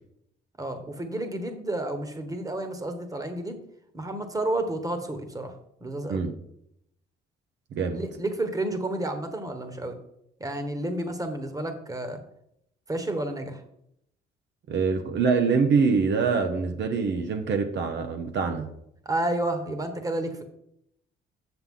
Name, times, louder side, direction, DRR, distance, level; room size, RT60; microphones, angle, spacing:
voice 1, 0.6-3.6 3.9-5.5 5.8-6.2 7.9-9.9 10.4-12.2 12.9-13.6 19.0-20.4, right 1 dB, 15° right, 7 dB, 1.3 m, -30 dB
voice 2, 14.7-18.7, right 5 dB, 65° right, 5 dB, 0.9 m, -24 dB
7.9 x 6.8 x 3.8 m, 0.75 s
cardioid pair, 90°, 20 cm